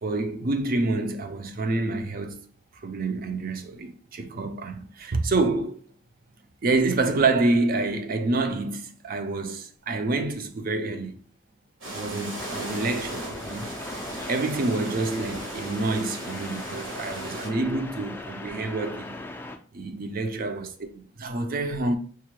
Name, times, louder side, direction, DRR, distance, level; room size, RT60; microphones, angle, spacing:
voice 1, 0.0-2.5 2.8-5.8 6.6-11.2 11.9-13.7 14.3-19.2 19.7-22.0, right 3 dB, 50° right, 0.5 m, -27 dB
sound 1, 11.8-17.5, right 1 dB, 80° right, 1.3 m, -37 dB
sound 2, 12.4-19.6, left 2 dB, 10° left, 0.3 m, -39 dB
4.5 x 2.1 x 3.1 m
head